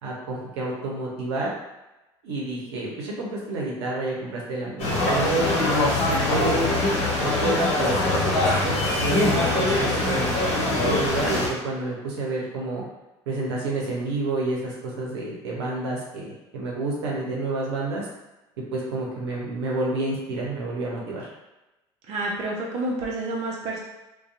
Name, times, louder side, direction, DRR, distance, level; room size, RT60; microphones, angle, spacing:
voice 1, 0.0-1.5 2.2-5.5 6.1-6.8 7.1-12.8 13.3-18.1 18.7-21.3, right 2 dB, 85° right, -4 dB, 0.7 m, -29 dB
sound 1, 4.8-11.5, left 2 dB, 50° left, 1.0 m, -23 dB
voice 2, 22.1-23.8, right 2 dB, 55° right, -2 dB, 0.6 m, -29 dB
2.7 x 2.2 x 2.5 m, 1.0 s
hypercardioid pair, 75°, 14 cm